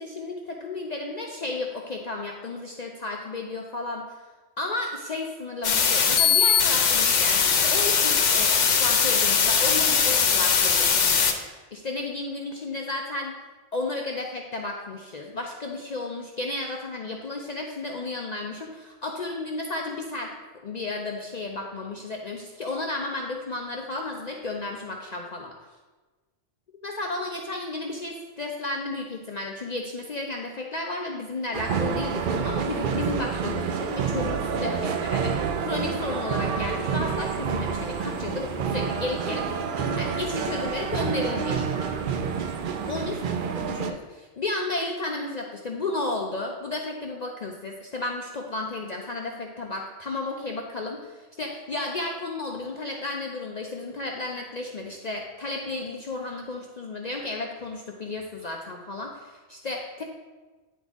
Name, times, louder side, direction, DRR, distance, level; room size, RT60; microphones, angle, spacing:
voice 1, 0.0-4.0 4.6-11.2 11.5-13.3 13.7-20.3 20.6-25.5 26.8-41.7 42.9-43.2 43.6-60.0, left 2 dB, 50° left, 1 dB, 0.5 m, -33 dB
sound 1, 5.6-11.3, left 6 dB, 90° left, 1.1 m, -21 dB
sound 2, 31.5-43.9, right 6 dB, 60° right, 0.6 m, -28 dB
9.3 x 4.0 x 3.5 m, 1.3 s
omnidirectional pair, 1.2 m